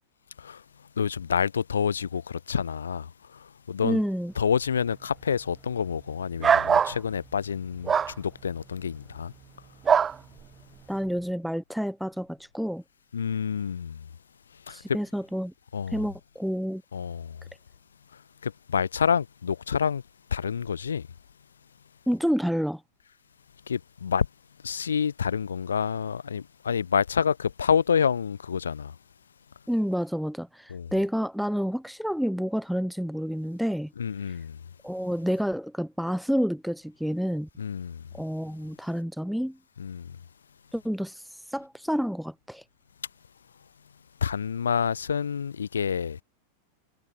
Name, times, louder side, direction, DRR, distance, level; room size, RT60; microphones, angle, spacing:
voice 1, 1.0-3.1 3.7-4.0 4.4-9.3 13.1-14.0 14.7-14.8 15.7-16.0 16.9-17.3 18.4-20.0 20.3-21.0 23.7-24.3 24.6-28.9 30.7-30.9 34.0-34.6 37.6-38.0 39.8-40.1 44.2-46.2, left 7 dB, 70° left, 3.5 m, -28 dB
voice 2, 3.8-4.3 10.9-12.8 14.7-15.5 15.9-16.8 22.1-22.8 29.7-33.9 34.3-34.4 34.8-37.5 38.1-39.6 40.7-42.6, equal, ahead, 3.9 m, -29 dB
sound 1, 6.4-7.0 7.9-8.1 9.9-10.2, right 7 dB, 20° right, 7.6 m, -21 dB
figure-of-eight pair, 90°, 0 cm